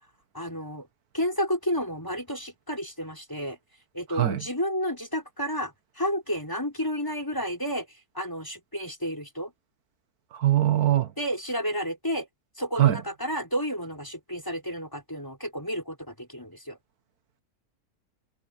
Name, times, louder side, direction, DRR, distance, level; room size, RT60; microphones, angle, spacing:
voice 1, 0.3-0.9 1.1-3.6 3.9-7.9 8.1-9.5 11.2-12.3 12.6-16.8, equal, 15° left, 5.0 m, -31 dB
voice 2, 4.1-4.5 10.3-11.1 12.7-13.0, right 12 dB, 90° right, 1.7 m, -22 dB
omnidirectional pair, 1.6 m